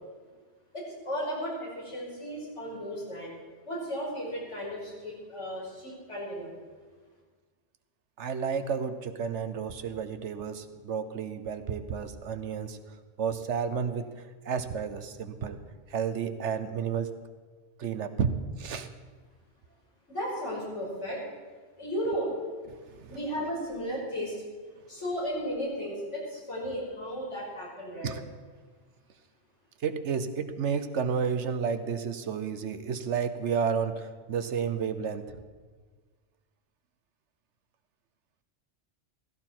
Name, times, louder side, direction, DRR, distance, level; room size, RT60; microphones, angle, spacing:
voice 1, 0.7-3.3 3.6-6.5 20.1-21.2 21.8-22.3 23.1-24.3 24.9-28.1, equal, 85° left, -5 dB, 5.8 m, -34 dB
voice 2, 8.2-12.8 13.2-15.6 15.9-17.1 17.8-18.9 22.9-23.2 28.0-28.2 29.8-35.4, right 6 dB, 80° right, 10 dB, 1.2 m, -31 dB
16.0 x 15.5 x 4.5 m, 1.5 s
omnidirectional pair, 1.2 m